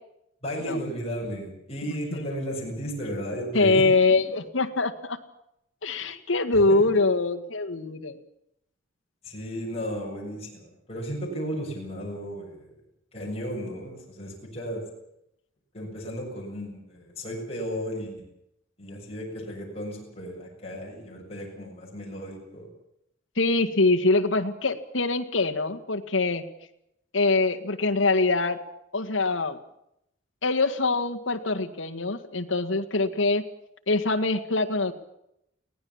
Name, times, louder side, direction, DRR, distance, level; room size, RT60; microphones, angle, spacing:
voice 1, 0.4-3.8 6.7-6.8 9.2-12.7 13.1-14.8 15.7-18.3 18.8-22.7, equal, 35° left, -2 dB, 7.2 m, -34 dB
voice 2, 1.9-2.3 3.5-5.2 5.8-8.2 23.4-26.4 27.1-28.6 28.9-29.6 30.4-33.4 33.9-34.9, left 3 dB, 75° left, 7 dB, 1.9 m, -24 dB
23.5 x 17.5 x 7.3 m, 0.79 s
head